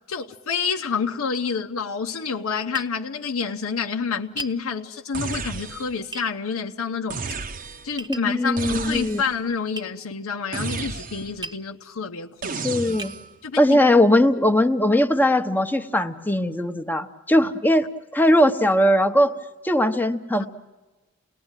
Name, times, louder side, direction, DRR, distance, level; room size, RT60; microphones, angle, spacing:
voice 1, 0.1-7.2 7.8-13.1 13.4-13.6 17.4-17.5 20.4-20.5, left 5 dB, 80° left, 0.8 m, -28 dB
Tap, 2.7-2.9 4.4-4.6 6.1-6.3 8.0-8.3 9.8-9.9 11.4-11.7 12.4-12.5 13.0-13.2, right 2 dB, 20° right, 1.0 m, -35 dB
sound 1, 5.1-6.1 7.1-8.0 8.6-9.4 10.5-11.4 12.4-13.3, right 4 dB, 40° right, 0.9 m, -32 dB
voice 2, 8.1-9.2 12.6-13.1 13.6-17.8 18.1-19.4 19.6-20.5, left 1 dB, 10° left, 0.9 m, -19 dB
28.5 x 19.5 x 9.0 m
head